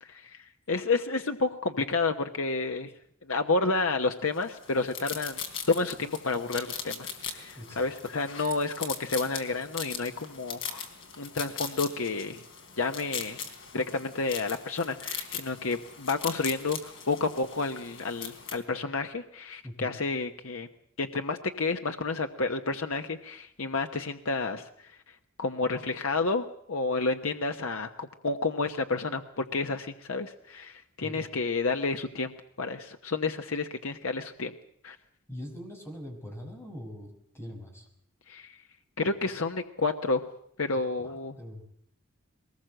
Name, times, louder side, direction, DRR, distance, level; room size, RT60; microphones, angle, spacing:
voice 1, 0.0-2.9 3.3-5.4 5.7-10.9 11.2-12.4 12.8-13.4 13.7-20.7 21.0-25.0 25.4-32.3 32.6-34.5 34.8-35.0 38.3-38.6 39.0-40.2 40.6-41.4, left 3 dB, 80° left, 6 dB, 1.1 m, -30 dB
sound 1, 4.4-18.6, left 7 dB, 65° left, 4.0 m, -40 dB
voice 2, 7.6-7.9 19.6-19.9 31.0-31.3 35.3-37.9 40.7-41.6, equal, 10° left, 1 dB, 5.8 m, -42 dB
22.0 x 20.0 x 7.8 m, 0.68 s
head